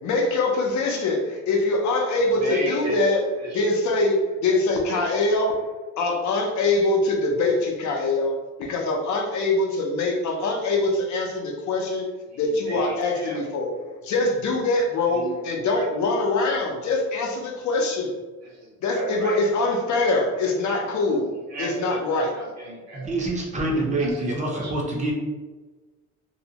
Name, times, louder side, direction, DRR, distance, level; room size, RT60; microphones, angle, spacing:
voice 1, 0.0-3.2 3.5-5.5 6.0-8.3 8.6-12.1 12.4-18.1 18.8-21.3 21.6-22.3, left 2 dB, 60° left, 1 dB, 0.6 m, -23 dB
voice 2, 2.3-3.0 3.4-3.6 4.4-4.5 4.8-5.1 12.3-13.4 15.1-15.9 18.4-19.4 21.0-21.2 21.5-23.1 23.9-24.7, right 1 dB, 55° right, -1 dB, 0.8 m, -34 dB
voice 3, 22.9-25.1, right 2 dB, 20° right, -2 dB, 0.6 m, -26 dB
2.7 x 2.0 x 2.7 m, 1.3 s
cardioid pair, 125°, 32 cm